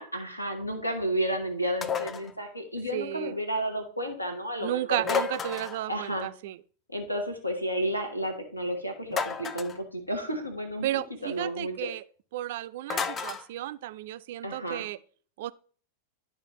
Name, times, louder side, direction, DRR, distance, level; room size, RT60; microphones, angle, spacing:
voice 1, 0.0-5.2 5.9-6.3 6.9-10.9 11.2-11.9 14.4-14.8, equal, 85° left, 1.1 m, -32 dB
sound 1, 1.8-2.3 5.0-5.9 9.1-9.8 12.9-13.5, left 6 dB, 25° left, 0.4 m, -31 dB
voice 2, 2.9-3.3 4.6-6.6 10.8-12.0 12.3-15.0 15.4-15.5, right 14 dB, 55° right, 0.3 m, -33 dB
11.0 x 4.1 x 3.0 m
figure-of-eight pair, 90°, 0 cm